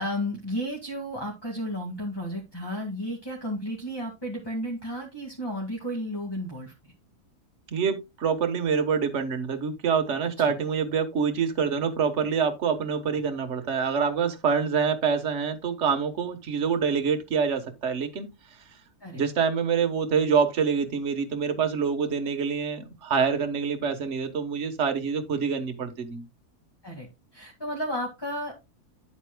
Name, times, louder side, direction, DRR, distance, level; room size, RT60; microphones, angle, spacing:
voice 1, 0.0-6.7 10.4-10.6 19.0-19.2 26.8-27.1 27.3-28.7, equal, 15° left, 1.9 m, -33 dB
voice 2, 7.7-18.3 19.1-26.3, right 6 dB, 50° right, 1.5 m, -26 dB
10.0 x 8.0 x 2.2 m
omnidirectional pair, 1.6 m